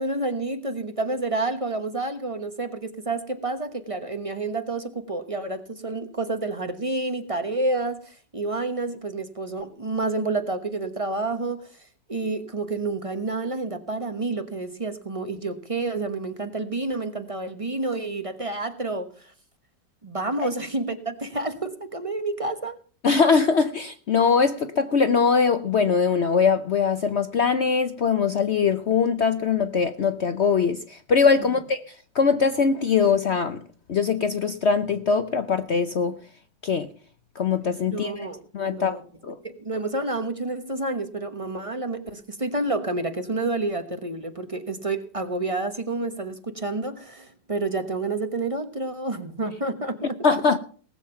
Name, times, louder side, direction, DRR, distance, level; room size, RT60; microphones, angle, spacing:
voice 1, 0.0-19.3 20.0-22.8 31.4-31.5 37.8-39.0 39.4-50.2, right 2 dB, 25° right, 1.0 m, -29 dB
voice 2, 23.0-31.8 32.1-33.6 33.9-36.2 36.6-36.9 37.4-38.3 38.5-39.4 50.2-50.6, left 5 dB, 60° left, 0.7 m, -22 dB
19.0 x 7.4 x 5.7 m
omnidirectional pair, 1.9 m